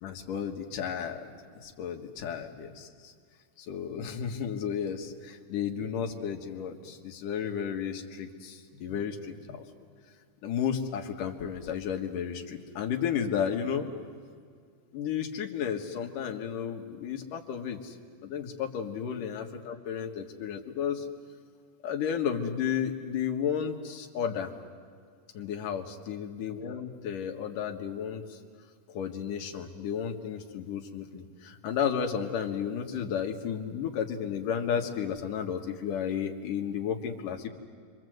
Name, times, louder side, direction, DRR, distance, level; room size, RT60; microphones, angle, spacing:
voice 1, 0.0-1.3 1.6-3.1 3.6-9.6 10.4-13.9 14.9-18.0 18.2-21.1 21.8-24.5 25.3-28.4 28.9-37.5, left 8 dB, 80° left, 3 dB, 3.2 m, -33 dB
29.5 x 25.0 x 7.9 m, 2.1 s
omnidirectional pair, 3.7 m